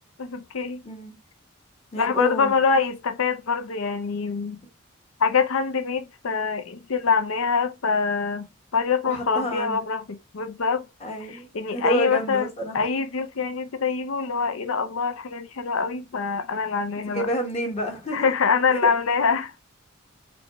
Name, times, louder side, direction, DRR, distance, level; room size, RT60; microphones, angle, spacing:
voice 1, 0.2-0.9 2.0-4.6 5.2-8.5 8.7-10.9 11.5-12.5 12.7-17.3 18.1-19.5, left 5 dB, 80° left, 0.5 m, -24 dB
voice 2, 0.8-1.2 1.9-2.6 9.0-9.8 11.0-12.8 17.1-18.3 18.7-18.8, right 1 dB, 30° left, 1.2 m, -29 dB
5.1 x 2.3 x 3.0 m
head